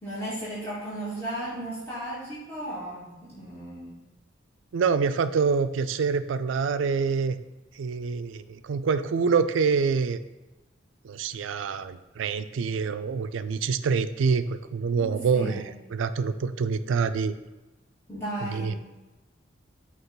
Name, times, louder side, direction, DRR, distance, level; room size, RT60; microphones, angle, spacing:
voice 1, 0.0-4.0 14.9-15.7 18.1-18.8, right 1 dB, 15° left, -11 dB, 1.8 m, -35 dB
voice 2, 4.7-7.4 7.8-10.2 11.0-15.7 15.9-17.4 18.5-18.7, right 5 dB, 90° right, 12 dB, 0.4 m, -26 dB
5.9 x 3.0 x 5.5 m, 1.1 s
head